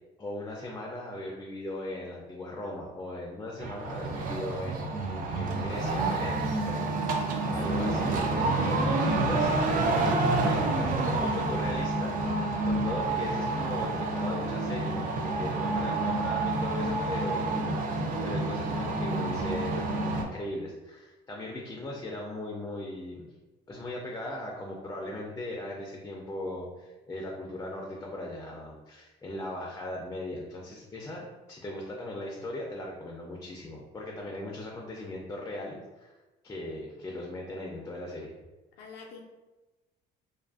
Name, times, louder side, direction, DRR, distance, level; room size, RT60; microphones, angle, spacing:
voice 1, 0.2-12.1 12.6-23.3 23.7-36.1 36.4-38.3, left 1 dB, 20° left, -1 dB, 0.4 m, -38 dB
sound 1, 3.6-20.2, right 2 dB, 55° right, 0.4 m, -28 dB
voice 2, 38.8-39.2, left 4 dB, 80° left, 0 dB, 0.4 m, -47 dB
2.5 x 2.4 x 2.3 m, 1.1 s
cardioid pair, 110°, 17 cm